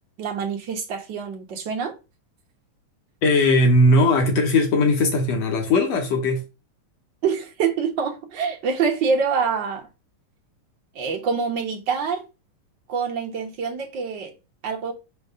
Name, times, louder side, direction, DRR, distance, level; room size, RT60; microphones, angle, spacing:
voice 1, 0.2-1.9 7.2-9.8 10.9-12.2 12.9-14.3 14.6-14.9, right 5 dB, 60° right, 1.2 m, -25 dB
voice 2, 3.2-6.4, left 2 dB, 65° left, 1.9 m, -18 dB
5.3 x 4.0 x 5.4 m
omnidirectional pair, 3.7 m